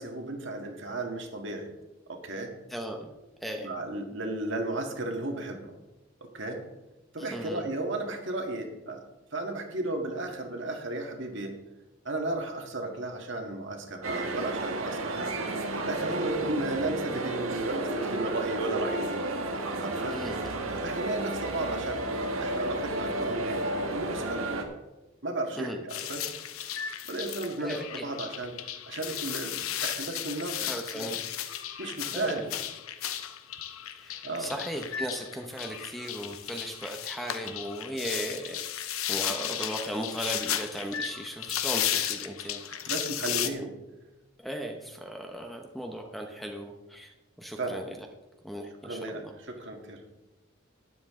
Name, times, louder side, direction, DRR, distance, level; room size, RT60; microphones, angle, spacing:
voice 1, 0.0-1.7 2.1-2.5 3.6-5.8 6.3-6.6 7.1-9.0 9.3-11.6 12.1-15.3 15.9-19.0 19.8-20.2 20.8-22.1 22.4-23.6 23.9-24.4 25.2-26.3 27.1-28.5 28.9-31.1 31.8-32.5 34.2-34.5 42.7-43.7 47.6-47.8 48.8-50.0, right 2 dB, 60° right, 3 dB, 1.8 m, -34 dB
voice 2, 2.7-3.1 3.4-3.7 7.2-7.7 16.4-16.5 20.1-20.6 25.6-25.8 27.6-28.1 30.6-31.2 32.1-32.5 33.9-42.6 43.4-43.7 44.4-48.1 48.4-49.3, equal, ahead, 3 dB, 0.8 m, -37 dB
sound 1, 14.0-24.6, right 2 dB, 80° right, 1.5 m, -32 dB
sound 2, 25.9-43.5, left 10 dB, 85° left, 0.8 m, -34 dB
12.5 x 9.9 x 3.7 m, 1.0 s
head